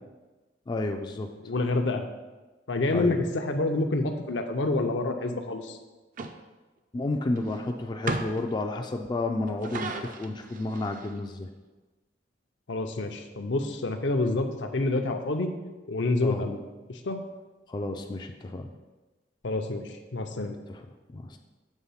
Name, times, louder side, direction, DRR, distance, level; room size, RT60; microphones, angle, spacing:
voice 1, 0.7-1.3 2.9-3.2 6.9-11.5 16.2-16.5 17.7-18.7 20.7-20.8 21.1-21.4, left 2 dB, 25° left, 4 dB, 0.3 m, -31 dB
voice 2, 1.4-2.1 2.7-5.8 12.7-15.5 15.9-16.6 16.9-17.2 19.4-20.6, left 2 dB, 70° left, 5 dB, 0.6 m, -28 dB
sound 1, 6.2-6.3 7.4-7.5 8.1-8.5 9.5-11.2, right 2 dB, 45° right, 0.5 m, -34 dB
7.2 x 3.4 x 5.6 m, 1.2 s
head